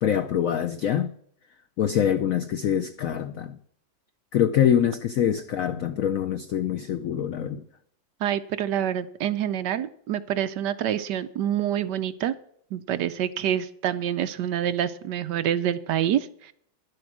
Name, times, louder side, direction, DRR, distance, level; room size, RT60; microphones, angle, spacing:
voice 1, 0.0-1.1 1.8-3.6 4.3-7.6, left 9 dB, 75° left, 0.7 m, -24 dB
voice 2, 8.2-12.4 12.7-16.5, right 10 dB, 70° right, 1.1 m, -27 dB
11.0 x 7.9 x 6.2 m
omnidirectional pair, 2.1 m